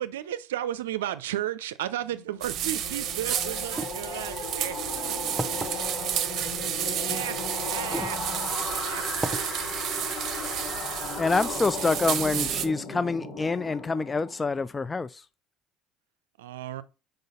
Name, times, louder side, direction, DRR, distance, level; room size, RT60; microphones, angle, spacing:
voice 1, 0.0-4.7 6.9-7.3 7.7-8.2 8.9-9.0 9.3-9.4 16.4-16.8, right 12 dB, 90° right, 0.5 m, -33 dB
sound 1, 2.0-14.7, left 4 dB, 55° left, 1.9 m, -36 dB
sound 2, 2.4-12.7, right 10 dB, 55° right, 0.7 m, -31 dB
voice 2, 3.2-9.5, left 4 dB, 80° left, 2.5 m, -47 dB
sound 3, 3.7-3.9 4.7-4.8 5.4-5.7 7.0-7.1 7.8-8.2 8.6-8.7 9.2-9.4, right 1 dB, 10° right, 0.8 m, -32 dB
voice 3, 11.2-15.2, left 3 dB, 25° left, 0.3 m, -26 dB
5.3 x 3.9 x 5.5 m
hypercardioid pair, 70°, 0 cm